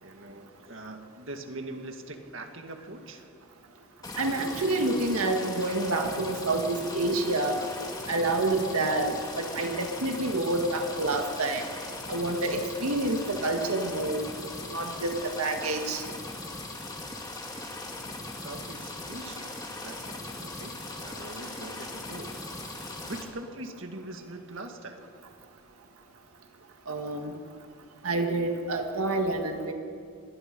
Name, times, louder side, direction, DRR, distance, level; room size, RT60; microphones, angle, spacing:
voice 1, 0.0-3.2 18.4-22.4 23.0-25.0, right 2 dB, 60° right, 4 dB, 2.0 m, -42 dB
sound 1, 4.0-23.2, left 2 dB, 15° left, 2.3 m, -39 dB
voice 2, 4.2-7.6 8.1-11.7 12.1-14.3 14.7-16.0 26.9-27.3 28.0-29.7, right 2 dB, 85° right, 4 dB, 1.9 m, -28 dB
25.5 x 20.0 x 5.4 m, 2.2 s
head